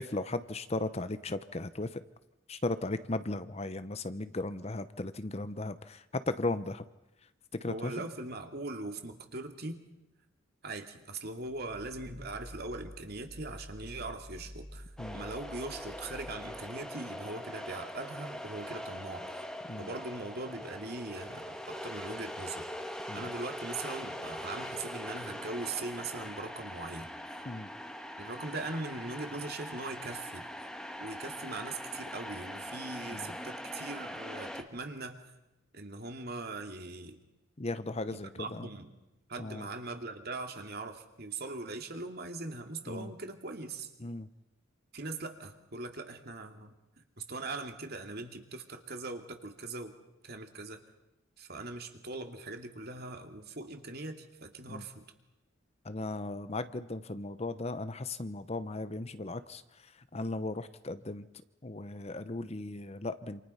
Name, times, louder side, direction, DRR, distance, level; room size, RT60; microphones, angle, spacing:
voice 1, 0.0-2.0 2.5-6.8 7.6-7.9 15.0-15.2 19.7-19.9 23.1-23.2 27.5-27.7 33.1-33.3 37.6-38.7 39.4-39.7 42.9-43.1 44.0-44.3 54.7-54.8 55.8-59.6 60.1-61.3 61.6-63.4, left 2 dB, 30° left, 12 dB, 0.8 m, -36 dB
voice 2, 7.7-9.8 10.6-14.9 15.1-19.3 19.8-27.4 28.2-30.5 31.0-35.2 35.7-37.2 38.1-38.9 39.3-43.9 44.9-46.7 47.2-49.9 50.2-50.8 51.4-55.0, right 2 dB, 50° right, 5 dB, 2.7 m, -41 dB
sound 1, 11.4-16.9, equal, 15° right, 3.1 m, -49 dB
sound 2, 15.0-34.6, equal, 5° left, 1.9 m, -42 dB
28.0 x 27.5 x 5.7 m, 0.95 s
head